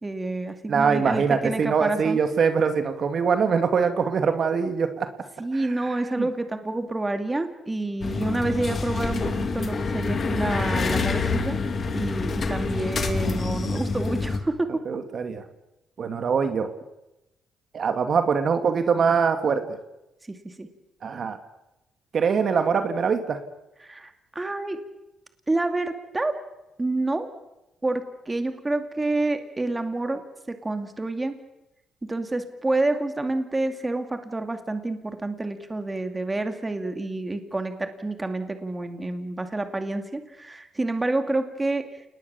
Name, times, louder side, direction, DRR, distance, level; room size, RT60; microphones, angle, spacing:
voice 1, 0.0-2.2 5.4-11.6 11.9-14.7 20.3-20.7 23.8-24.8 25.5-26.3 26.8-27.3 27.8-30.2 30.5-31.4 32.1-41.8, right 2 dB, 20° right, 7 dB, 2.5 m, -28 dB
voice 2, 0.7-5.1 6.2-6.3 14.9-15.4 16.0-16.7 17.7-19.6 21.0-21.4 22.1-23.4, right 6 dB, 55° right, 7 dB, 2.4 m, -23 dB
sound 1, 8.0-14.4, left 4 dB, 45° left, 3.0 m, -27 dB
28.5 x 20.0 x 7.2 m, 0.94 s
cardioid pair, 90°, 0 cm